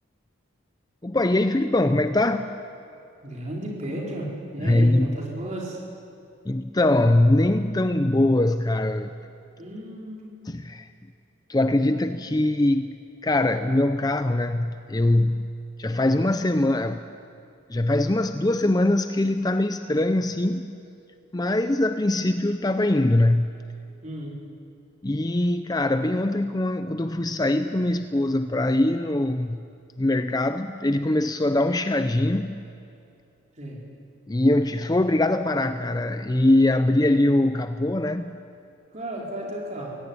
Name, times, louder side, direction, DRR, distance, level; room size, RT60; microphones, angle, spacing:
voice 1, 1.0-2.6 4.6-5.2 6.5-9.1 10.5-10.9 11.5-17.0 17.7-20.7 21.3-23.5 25.0-29.6 30.0-32.6 34.3-38.4, left 1 dB, 20° left, 10 dB, 0.5 m, -22 dB
voice 2, 3.2-5.8 9.6-10.3 24.0-24.4 33.6-33.8 38.9-40.0, right 1 dB, 35° right, -3 dB, 4.6 m, -33 dB
21.5 x 17.0 x 9.8 m, 2.7 s
head